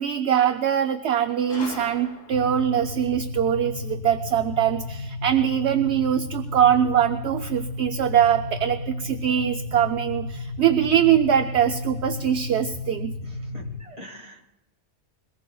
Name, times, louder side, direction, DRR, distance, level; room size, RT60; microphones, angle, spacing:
voice 1, 0.0-13.1, right 9 dB, 65° right, 7 dB, 0.8 m, -22 dB
Gunshot gunfire, 1.5-2.7, left 3 dB, 70° left, 2.4 m, -40 dB
sound 1, 2.3-13.8, left 3 dB, 90° left, 1.1 m, -33 dB
voice 2, 13.2-14.4, equal, 30° right, 1 dB, 1.7 m, -44 dB
23.0 x 19.0 x 2.3 m, 1.0 s
omnidirectional pair, 1.3 m